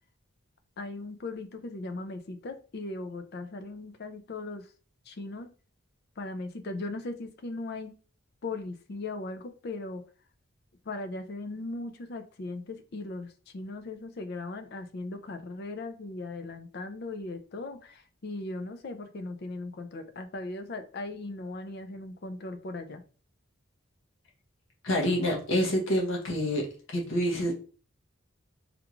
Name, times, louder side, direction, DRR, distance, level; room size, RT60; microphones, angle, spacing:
voice 1, 0.8-4.6 5.1-5.5 6.2-7.9 8.4-10.0 10.9-23.0, left 2 dB, 50° left, 8 dB, 0.4 m, -38 dB
voice 2, 24.8-26.7 26.9-27.5, equal, 65° left, -2 dB, 1.0 m, -27 dB
3.5 x 2.4 x 3.0 m, 0.38 s
head